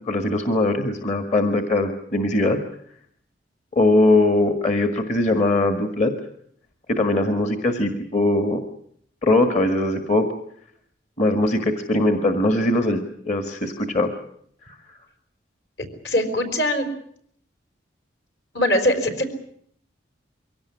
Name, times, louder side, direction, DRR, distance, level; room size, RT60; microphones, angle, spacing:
voice 1, 0.0-2.6 3.7-6.1 6.9-8.6 9.2-10.3 11.2-13.0 13.2-14.1 14.7-14.8, left 2 dB, 40° left, 6 dB, 1.7 m, -21 dB
voice 2, 16.0-16.9 18.5-19.4, left 1 dB, 65° left, 7 dB, 4.8 m, -21 dB
23.5 x 17.5 x 9.9 m, 0.67 s
head